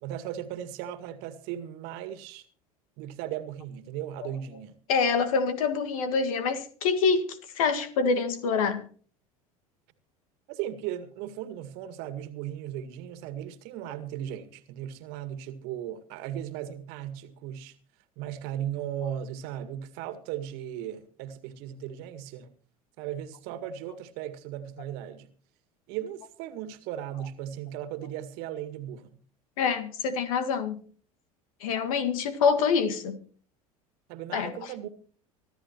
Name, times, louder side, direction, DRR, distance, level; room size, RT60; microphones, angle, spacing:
voice 1, 0.0-2.5 3.0-4.7 10.5-17.8 18.2-22.5 23.0-25.3 25.9-29.2 34.1-34.9, right 10 dB, 60° right, 1.9 m, -37 dB
voice 2, 4.9-8.9 29.6-30.8 31.6-33.2 34.3-34.7, left 5 dB, 70° left, 1.9 m, -26 dB
24.5 x 12.5 x 3.0 m
hypercardioid pair, 75°, 19 cm